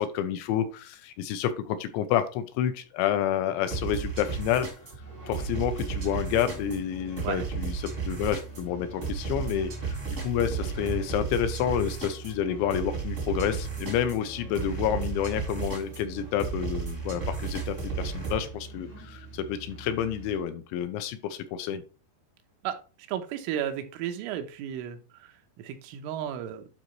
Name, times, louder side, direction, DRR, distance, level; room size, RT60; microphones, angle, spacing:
voice 1, 0.0-4.7 5.3-21.8, left 10 dB, 80° left, 10 dB, 2.9 m, -29 dB
sound 1, 3.7-18.5, right 5 dB, 45° right, 0.9 m, -34 dB
sound 2, 5.0-20.4, right 4 dB, 40° left, 0.8 m, -45 dB
voice 2, 23.1-26.7, right 10 dB, 90° right, 6 dB, 3.4 m, -34 dB
12.0 x 4.0 x 3.1 m, 0.35 s
omnidirectional pair, 5.5 m